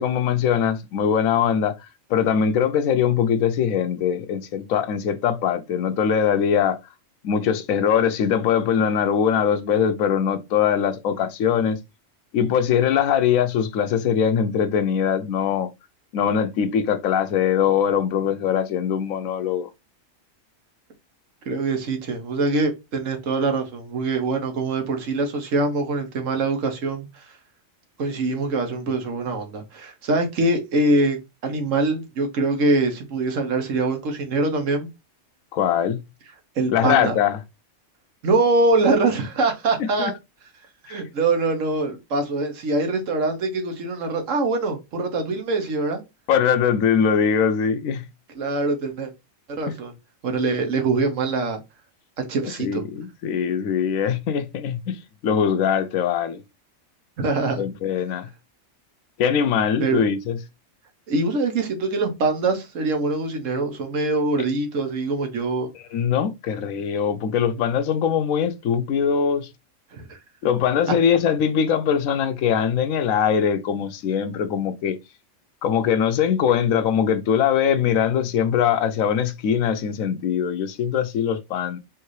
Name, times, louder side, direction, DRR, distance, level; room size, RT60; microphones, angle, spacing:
voice 1, 0.0-1.7 2.1-6.8 7.2-11.8 12.3-15.7 16.1-19.7 35.5-36.0 36.7-37.4 40.0-40.1 40.9-41.0 46.3-48.1 52.6-56.4 57.6-58.3 59.2-60.4 65.9-69.5 70.4-75.0 75.6-81.8, left 8 dB, 80° left, 1.0 m, -22 dB
voice 2, 21.5-27.4 28.0-34.9 36.6-37.2 38.2-40.1 40.8-46.0 48.3-49.1 49.6-49.9 50.2-51.6 52.2-52.8 57.2-57.6 59.8-60.0 61.1-65.7 69.9-70.2 70.9-71.0, right 3 dB, 70° right, 1.3 m, -23 dB
4.7 x 2.7 x 3.1 m
omnidirectional pair, 1.4 m